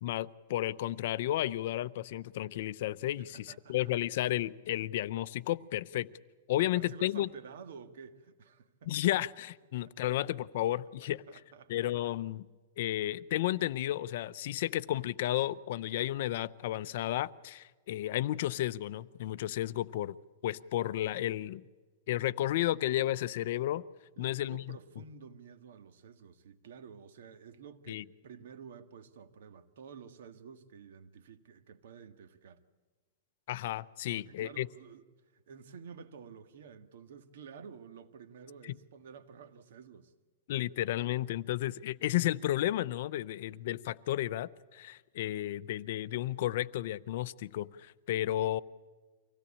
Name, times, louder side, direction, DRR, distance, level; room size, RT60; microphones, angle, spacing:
voice 1, 0.0-6.1 6.5-7.3 8.9-11.2 11.7-12.5 12.8-20.2 20.4-21.6 22.1-23.8 24.2-24.8 27.9-28.0 33.5-34.7 38.6-38.7 40.5-48.6, left 14 dB, 60° left, 0.6 m, -32 dB
voice 2, 3.1-3.9 6.5-8.9 9.8-10.2 11.0-12.1 24.2-32.6 34.1-35.0 35.3-40.1, right 6 dB, 75° right, 1.7 m, -51 dB
25.0 x 17.0 x 8.6 m
supercardioid pair, 160°, 0 cm